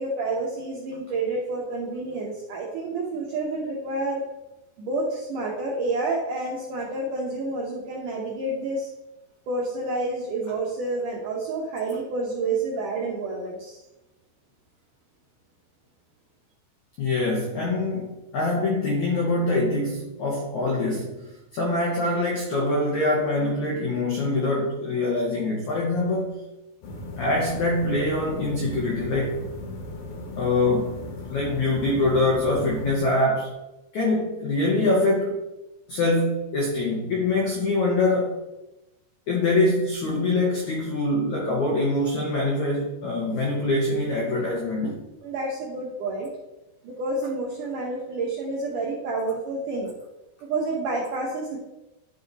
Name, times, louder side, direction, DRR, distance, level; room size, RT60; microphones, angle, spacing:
voice 1, 0.0-4.2 4.8-8.9 9.5-13.8 45.2-46.3 46.8-49.9 50.4-51.6, right 2 dB, 75° right, -3 dB, 1.9 m, -29 dB
voice 2, 17.0-26.3 27.2-29.5 30.4-33.6 33.9-35.4 35.9-38.3 39.3-45.0, left 2 dB, 80° left, -1 dB, 1.7 m, -24 dB
sound 1, 26.8-33.0, left 2 dB, 65° left, 2.4 m, -37 dB
10.5 x 4.2 x 4.0 m, 1.0 s
omnidirectional pair, 5.0 m